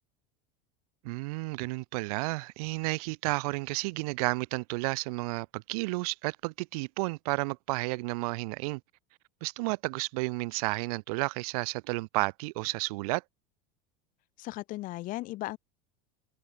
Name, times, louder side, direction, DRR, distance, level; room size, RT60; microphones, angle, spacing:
voice 1, 1.0-8.8 9.4-13.2, right 25 dB, 65° right, 1.0 m, -32 dB
voice 2, 14.4-15.6, left 18 dB, 40° left, 5.3 m, -36 dB
open air
supercardioid pair, 165°, 20 cm